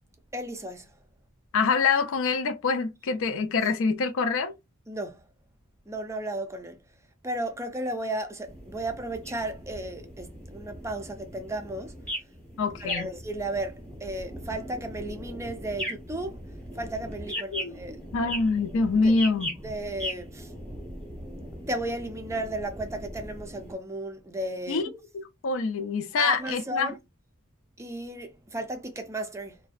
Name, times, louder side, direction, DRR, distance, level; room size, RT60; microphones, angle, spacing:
voice 1, 0.3-0.9 4.9-5.2 5.9-6.8 7.2-11.9 12.8-16.4 16.8-18.1 19.0-19.2 19.6-20.5 21.7-24.9 26.2-27.0 27.8-29.6, right 1 dB, 15° right, 0.4 m, -34 dB
voice 2, 1.5-4.5 12.6-13.1 17.5-17.8 18.1-19.5 24.7-24.8 25.4-26.9, left 4 dB, 65° left, 0.4 m, -25 dB
sound 1, 8.5-23.7, equal, 5° left, 0.8 m, -39 dB
2.5 x 2.2 x 2.3 m
head